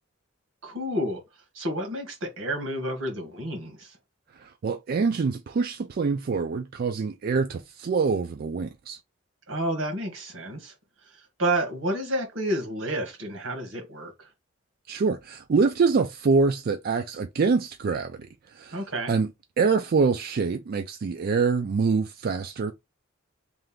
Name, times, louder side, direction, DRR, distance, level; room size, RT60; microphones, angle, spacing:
voice 1, 0.6-1.2 1.5-4.0 9.5-10.7 11.4-14.3 18.7-19.1, right 1 dB, 85° right, 1.5 m, -30 dB
voice 2, 4.6-9.0 14.9-18.1 18.6-18.8 19.1-19.3 19.6-22.7, right 4 dB, 50° right, 0.4 m, -25 dB
3.3 x 2.5 x 3.6 m
head